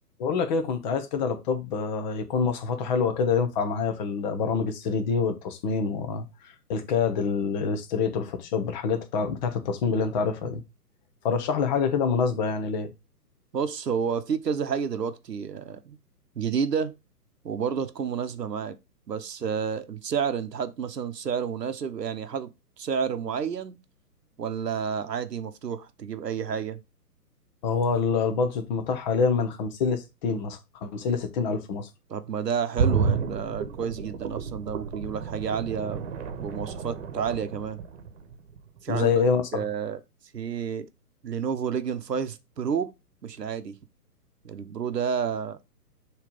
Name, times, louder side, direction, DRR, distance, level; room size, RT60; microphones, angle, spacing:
voice 1, 0.2-6.3 6.7-10.6 11.2-12.9 27.6-31.9 38.9-39.6, left 5 dB, 30° left, 1.0 m, -26 dB
voice 2, 13.5-16.0 16.3-16.9 17.4-18.8 19.1-22.5 22.8-23.8 24.4-26.8 32.1-36.0 36.4-37.8 38.8-39.1 39.5-40.0 40.3-40.9 41.2-42.9 43.2-43.8 44.4-45.6, right 7 dB, 80° right, 1.0 m, -30 dB
sound 1, 32.7-38.6 38.9-39.0, right 5 dB, 40° right, 1.2 m, -30 dB
6.8 x 3.2 x 5.1 m
figure-of-eight pair, 130°, 48 cm